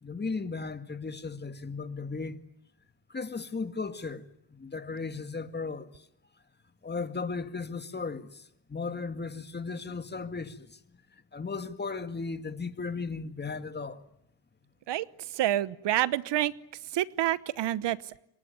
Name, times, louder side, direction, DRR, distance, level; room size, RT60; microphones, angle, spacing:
voice 1, 0.0-2.4 3.1-4.2 4.5-5.9 6.8-8.4 8.7-10.8 11.3-14.0, left 4 dB, 25° left, 2.1 m, -36 dB
voice 2, 15.3-16.5 16.9-18.2, right 13 dB, 70° right, 1.1 m, -28 dB
26.5 x 23.5 x 9.7 m
cardioid pair, 95°, 44 cm